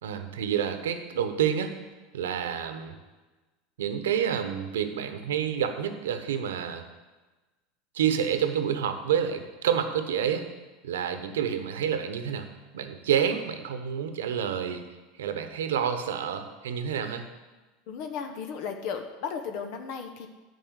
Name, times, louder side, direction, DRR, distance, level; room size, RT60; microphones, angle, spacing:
voice 1, 0.0-1.7 2.1-3.0 3.8-6.8 7.9-10.5 10.8-12.5 12.7-14.8 15.2-17.2, right 8 dB, 85° right, 8 dB, 0.9 m, -28 dB
voice 2, 17.9-20.3, left 6 dB, 65° left, 5 dB, 0.9 m, -35 dB
9.5 x 5.4 x 8.1 m, 1.2 s
hypercardioid pair, 95°, 0 cm